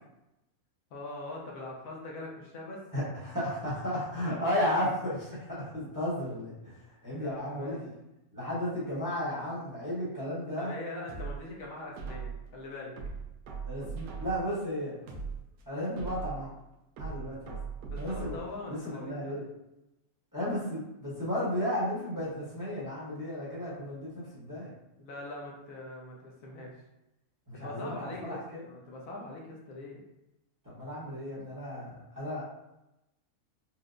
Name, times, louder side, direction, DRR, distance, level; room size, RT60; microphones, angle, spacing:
voice 1, 0.9-2.8 7.1-7.8 10.6-13.0 17.9-19.4 25.0-26.7 27.5-30.0, left 2 dB, 70° left, -2 dB, 1.0 m, -42 dB
voice 2, 2.9-6.7 7.0-7.9 8.3-10.7 13.7-14.9 15.7-16.5 17.0-17.6 18.0-18.4 18.7-19.4 20.3-24.7 27.5-28.6 30.6-32.4, equal, 15° right, -9 dB, 0.8 m, -34 dB
sound 1, 11.1-12.5 13.0-14.6 15.0-16.5 17.0-18.6 19.0-19.1, right 5 dB, 85° right, 1.1 m, -40 dB
4.3 x 2.0 x 2.5 m, 0.92 s
omnidirectional pair, 1.6 m